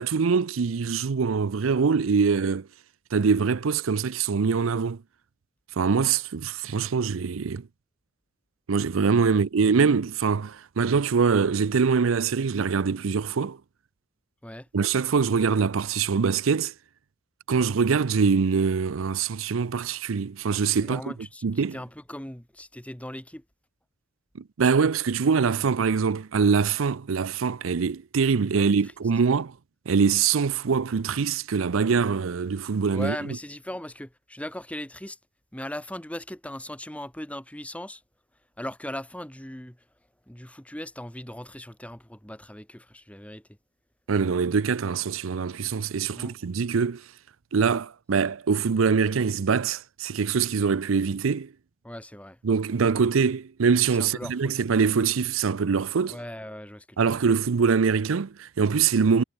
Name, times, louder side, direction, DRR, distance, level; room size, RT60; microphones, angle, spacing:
voice 1, 0.0-2.7 3.1-5.0 5.8-7.7 8.7-13.6 14.7-16.7 17.5-21.0 21.4-21.8 24.4-29.5 29.9-33.2 44.1-47.0 47.5-51.5 52.4-56.2 57.0-59.2, right 5 dB, 85° right, 0.5 m, -24 dB
voice 2, 20.8-21.4 21.7-23.4 28.5-28.9 29.3-29.4 32.9-35.2 35.5-38.0 38.6-39.8 40.3-43.5 46.1-46.5 51.8-52.4 54.0-54.6 56.1-57.3, left 1 dB, 5° left, 2.1 m, -38 dB
head